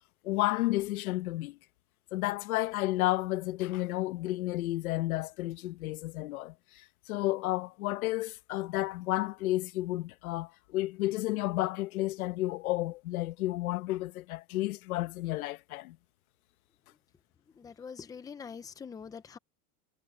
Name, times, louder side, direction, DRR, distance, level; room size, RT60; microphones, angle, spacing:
voice 1, 0.2-1.6 2.1-16.0, left 17 dB, 80° left, 1.3 m, -32 dB
voice 2, 17.5-19.4, left 6 dB, 10° left, 0.8 m, -44 dB
supercardioid pair, 160°, 42 cm